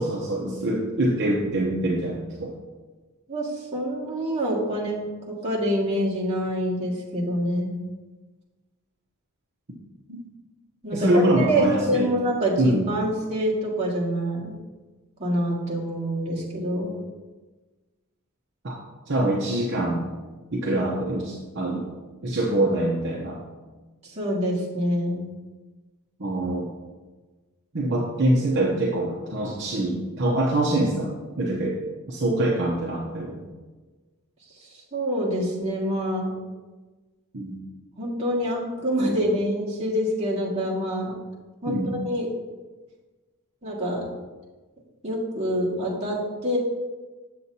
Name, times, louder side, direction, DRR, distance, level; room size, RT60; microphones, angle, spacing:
voice 1, 0.0-2.5 10.1-10.2 10.9-12.1 12.6-12.9 18.6-18.8 19.1-20.1 20.5-21.8 22.2-23.4 26.2-26.7 27.7-31.8 32.1-33.4 37.3-37.6 41.6-41.9, right 1 dB, 55° right, -2 dB, 0.9 m, -24 dB
voice 2, 3.3-5.0 5.3-7.7 10.8-14.6 15.2-17.0 24.0-25.3 34.9-36.3 38.0-41.1 41.6-42.3 43.6-44.0 45.0-46.6, equal, 30° right, -6 dB, 1.9 m, -26 dB
7.6 x 7.5 x 2.8 m, 1.3 s
head